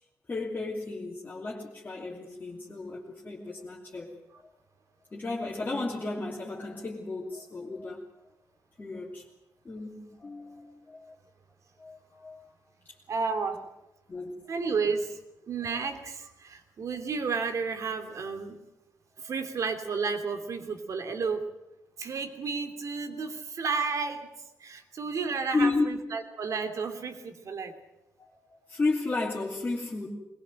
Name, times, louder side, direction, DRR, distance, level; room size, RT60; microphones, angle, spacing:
voice 1, 0.3-4.1 5.1-8.0 8.8-9.2 9.6-11.1 11.8-12.5 14.1-14.3 25.5-25.9 28.2-30.1, left 3 dB, 25° left, -4 dB, 3.0 m, -33 dB
voice 2, 13.1-13.6 14.5-15.2 15.5-18.6 19.2-21.5 22.0-24.3 24.6-27.8, right 5 dB, 55° right, 7 dB, 2.9 m, -32 dB
21.5 x 21.0 x 7.8 m, 0.93 s
wide cardioid pair, 150°, 6 cm